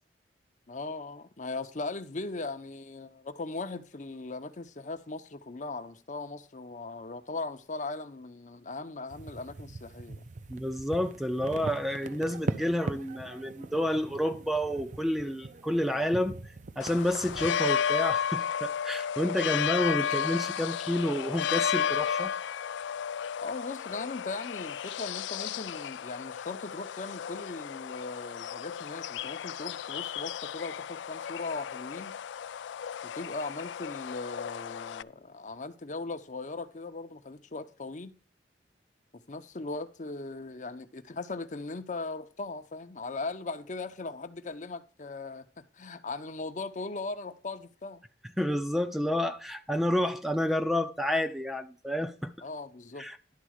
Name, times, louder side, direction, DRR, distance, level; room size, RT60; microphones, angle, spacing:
voice 1, 0.7-10.2 23.4-32.2 33.0-38.1 39.3-48.0 52.4-53.1, left 3 dB, 45° left, 0.7 m, -39 dB
sound 1, 9.1-17.5, right 2 dB, 45° right, 0.6 m, -40 dB
voice 2, 10.5-16.4 16.8-22.3 48.4-52.3 53.0-53.2, equal, ahead, 0.5 m, -29 dB
sound 2, 16.8-35.0, left 8 dB, 90° left, 0.3 m, -33 dB
11.5 x 4.1 x 6.4 m
head